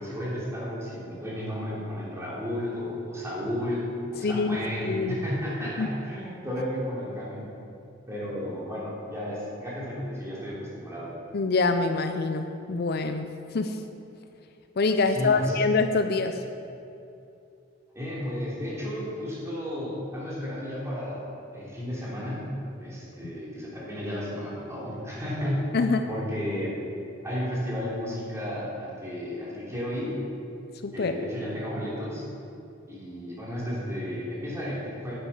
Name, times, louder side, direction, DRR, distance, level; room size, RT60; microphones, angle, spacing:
voice 1, 0.0-7.4 8.1-11.1 15.1-15.7 17.9-21.2 21.5-22.5 22.8-25.8 26.1-26.8 27.2-30.2 30.9-32.3 32.9-35.2, equal, 15° right, -7 dB, 3.2 m, -33 dB
voice 2, 4.2-4.6 4.8-5.2 5.8-5.9 11.3-13.3 13.5-13.8 14.8-16.4 25.7-26.0 30.8-31.1, left 4 dB, 55° left, 7 dB, 0.5 m, -25 dB
9.9 x 9.9 x 5.6 m, 2.7 s
head